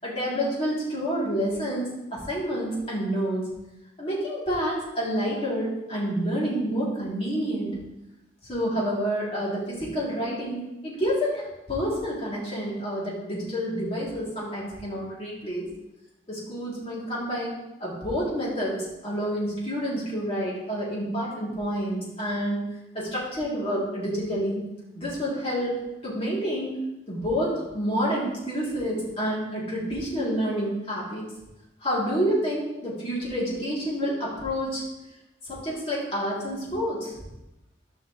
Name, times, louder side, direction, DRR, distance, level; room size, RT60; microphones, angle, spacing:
voice 1, 0.0-3.4 4.0-7.7 8.4-11.4 11.7-15.6 16.3-22.6 22.9-24.7 24.9-26.8 27.1-31.3 31.8-34.8 35.4-37.1, equal, 30° left, -6 dB, 2.9 m, -28 dB
14.0 x 5.5 x 3.2 m, 0.94 s
head